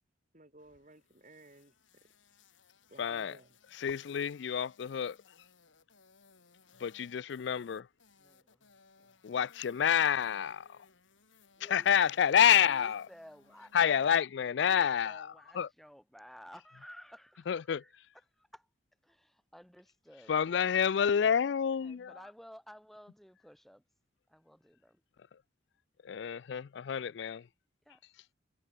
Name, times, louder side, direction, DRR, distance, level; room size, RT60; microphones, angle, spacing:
voice 1, 0.3-2.0 2.9-3.6, right 1 dB, 40° right, 5.7 m, -57 dB
sound 1, 0.6-14.2, left 5 dB, 85° left, 2.9 m, -64 dB
voice 2, 3.0-3.4 3.7-5.2 6.8-7.9 9.2-10.7 11.6-13.1 13.7-15.7 17.5-17.8 20.3-22.2 26.0-27.4, left 8 dB, 65° left, 0.4 m, -28 dB
voice 3, 8.2-8.7 9.0-9.1 11.6-11.9 12.7-13.8 14.6-18.0 18.4-18.7 19.0-20.3 21.8-23.8 24.3-25.0 27.8-28.0, equal, ahead, 1.6 m, -55 dB
head